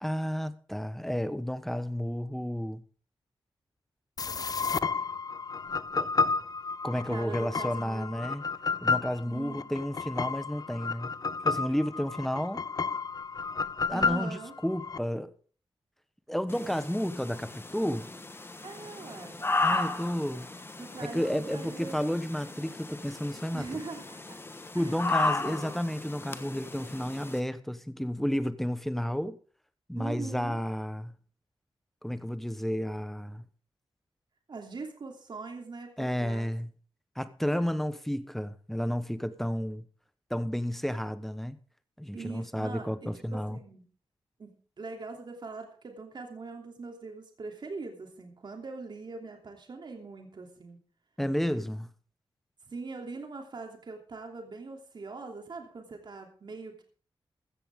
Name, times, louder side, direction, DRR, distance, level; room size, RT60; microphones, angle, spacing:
voice 1, 0.0-2.8 5.9-6.1 6.8-8.4 8.8-11.1 11.4-12.6 13.9-15.3 16.3-18.1 19.6-20.5 21.0-23.7 24.7-29.4 29.9-31.1 32.0-33.4 36.0-36.7 37.2-39.8 40.3-41.6 42.0-43.6 51.2-51.9, equal, 5° left, 1.1 m, -31 dB
sound 1, 4.2-15.0, left 5 dB, 45° left, 0.5 m, -32 dB
voice 2, 7.0-8.4 9.2-9.7 13.9-14.5 18.6-19.4 20.8-22.0 23.5-24.4 24.7-25.8 29.9-30.6 34.5-36.5 42.1-43.9 44.4-50.8 52.7-56.8, right 4 dB, 55° right, 3.0 m, -42 dB
sound 2, 16.5-27.4, left 3 dB, 25° left, 1.3 m, -35 dB
15.5 x 13.5 x 3.7 m
wide cardioid pair, 110°, 9 cm